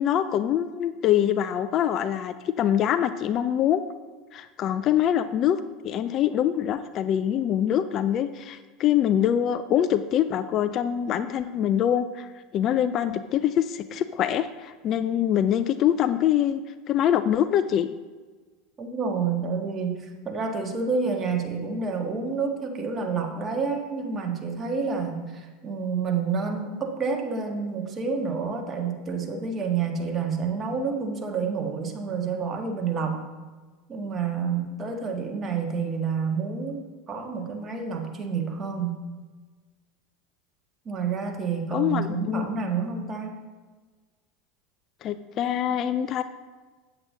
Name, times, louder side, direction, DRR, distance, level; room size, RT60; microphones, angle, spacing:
voice 1, 0.0-3.8 4.3-12.3 12.5-16.6 16.9-17.9 41.7-42.4 45.0-46.2, left 10 dB, 45° left, 12 dB, 0.4 m, -24 dB
voice 2, 18.8-33.2 33.9-36.8 37.1-39.0 40.8-43.3, right 5 dB, 30° right, 2 dB, 1.7 m, -29 dB
8.9 x 7.7 x 3.9 m, 1.3 s
figure-of-eight pair, 80°, 0 cm